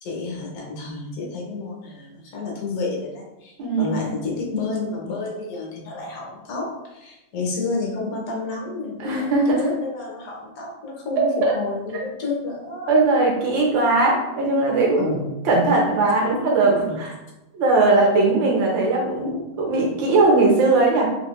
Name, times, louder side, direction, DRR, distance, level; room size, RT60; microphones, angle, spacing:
voice 1, 0.0-13.0 15.0-15.5 16.8-17.0, left 3 dB, 60° left, -1 dB, 1.1 m, -30 dB
voice 2, 3.6-4.0 9.0-9.6 11.4-11.5 12.9-15.2 15.4-17.1 17.5-21.1, right 2 dB, 75° right, -2 dB, 1.6 m, -19 dB
3.6 x 2.6 x 3.0 m, 0.96 s
omnidirectional pair, 2.1 m